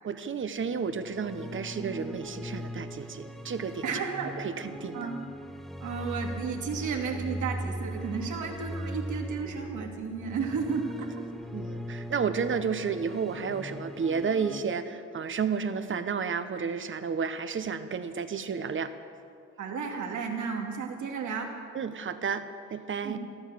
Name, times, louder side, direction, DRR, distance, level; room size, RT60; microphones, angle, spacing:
voice 1, 0.0-3.8 4.4-5.1 11.5-18.9 21.7-22.4 22.7-23.2, right 6 dB, 40° right, 10 dB, 1.1 m, -31 dB
sound 1, 0.8-14.6, right 1 dB, ahead, 1.0 m, -39 dB
voice 2, 3.8-4.4 4.9-5.2 5.8-11.2 19.6-21.5 23.0-23.2, right 5 dB, 75° right, 2 dB, 2.5 m, -33 dB
14.0 x 13.5 x 7.6 m, 2.3 s
cardioid pair, 90°, 30 cm